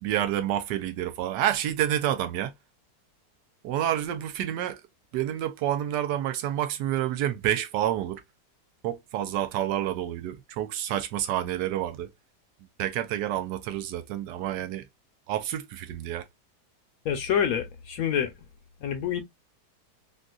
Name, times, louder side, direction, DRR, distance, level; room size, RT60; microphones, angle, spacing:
voice 1, 0.0-2.5 3.6-4.8 5.1-8.2 8.8-12.1 12.8-14.8 15.3-16.2, right 11 dB, 80° right, 1.2 m, -28 dB
voice 2, 17.0-18.3 18.8-19.2, left 8 dB, 65° left, 1.0 m, -27 dB
3.8 x 2.4 x 2.3 m
omnidirectional pair, 1.8 m